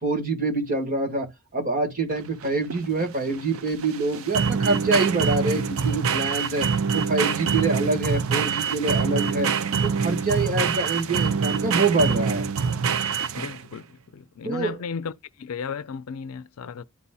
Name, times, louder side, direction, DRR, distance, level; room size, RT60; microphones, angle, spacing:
voice 1, 0.0-6.7 6.9-9.5 9.8-12.5 14.4-14.8, right 3 dB, 40° right, 1.8 m, -25 dB
sound 1, 2.1-13.7, right 6 dB, 70° right, 0.5 m, -25 dB
voice 2, 13.3-15.1 15.4-16.8, left 6 dB, 90° left, 0.4 m, -34 dB
12.0 x 4.1 x 2.3 m
head